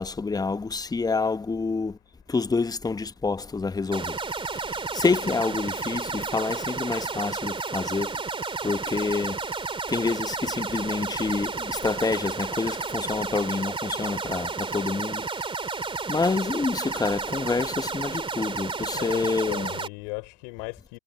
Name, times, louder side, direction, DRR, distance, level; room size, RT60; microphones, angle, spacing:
voice 1, 0.0-2.0 2.3-4.2 4.5-8.1 8.6-9.4 9.9-15.2 16.1-19.7, left 4 dB, 10° left, 1.1 m, -27 dB
sound 1, 3.9-19.9, right 4 dB, 15° right, 2.5 m, -32 dB
voice 2, 18.9-21.0, left 40 dB or more, 55° left, 4.5 m, -37 dB
hypercardioid pair, 90°, 39 cm